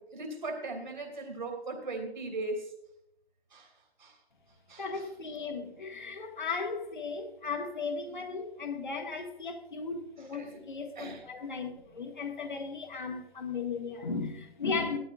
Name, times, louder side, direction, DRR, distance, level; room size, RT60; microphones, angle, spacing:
voice 1, 0.0-2.7 3.5-4.2 4.7-5.1 10.3-10.6 11.0-11.2, right 2 dB, 45° right, 2.9 m, -39 dB
voice 2, 4.8-15.0, left 4 dB, 50° left, 1.6 m, -36 dB
15.0 x 13.0 x 2.5 m
figure-of-eight pair, 160°, 31 cm